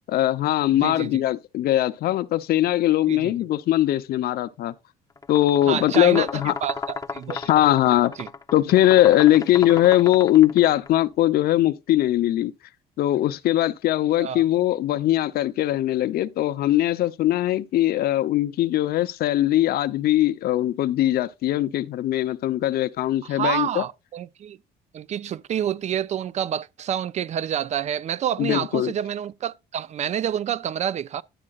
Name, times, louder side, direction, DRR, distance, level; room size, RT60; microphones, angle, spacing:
voice 1, 0.1-4.7 5.3-6.5 7.3-8.1 8.5-12.5 13.0-23.8 28.4-28.9, left 13 dB, 65° left, 0.7 m, -21 dB
voice 2, 0.8-1.2 3.1-3.3 5.7-7.4 8.2-8.3 14.2-14.4 23.3-24.6 24.9-31.2, right 9 dB, 45° right, 0.5 m, -28 dB
sound 1, 5.2-10.9, left 4 dB, 20° left, 0.7 m, -35 dB
11.0 x 7.4 x 2.4 m
cardioid pair, 110°, 17 cm